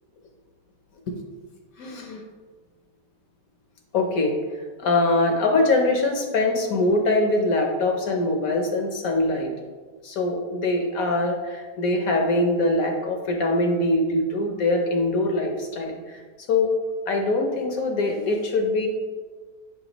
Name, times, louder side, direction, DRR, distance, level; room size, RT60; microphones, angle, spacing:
voice 1, 1.8-2.2 3.9-4.4 4.8-9.5 10.0-16.2 16.5-16.7 17.1-18.9, left 2 dB, 65° left, 3 dB, 1.1 m, -23 dB
7.0 x 5.5 x 2.9 m, 1.4 s
omnidirectional pair, 1.8 m